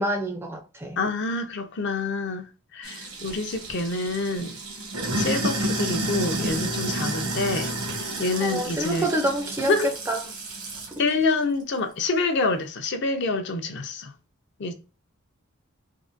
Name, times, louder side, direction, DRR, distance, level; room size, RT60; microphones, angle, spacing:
voice 1, 0.0-1.0 8.4-9.8 10.1-10.2 10.9-11.0, right 1 dB, 10° right, 0.3 m, -27 dB
voice 2, 1.0-2.5 2.7-4.6 5.2-9.1 9.7-9.9 11.0-14.1 14.6-14.7, left 3 dB, 50° left, 0.5 m, -27 dB
Sink (filling or washing), 2.8-11.0, right 1 dB, 90° right, 1.1 m, -30 dB
3.6 x 2.1 x 2.5 m
head